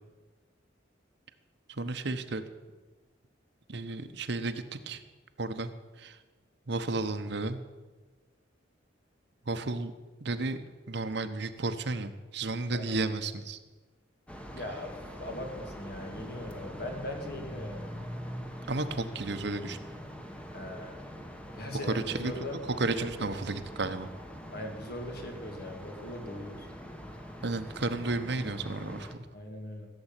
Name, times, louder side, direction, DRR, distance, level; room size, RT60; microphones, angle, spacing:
voice 1, 1.8-2.4 3.7-5.0 5.4-5.7 6.0-6.2 6.7-7.6 9.5-9.9 10.2-10.6 10.9-13.6 18.7-19.8 21.9-22.3 22.8-24.1 27.4-29.2, right 3 dB, 65° right, 10 dB, 1.0 m, -33 dB
sound 1, 14.3-29.1, equal, 5° left, 1.2 m, -44 dB
voice 2, 14.5-17.9 20.5-21.0 21.5-22.6 22.9-23.3 24.5-26.7 29.3-29.9, left 1 dB, 55° left, 3 dB, 2.6 m, -40 dB
16.0 x 7.8 x 9.0 m, 1.3 s
head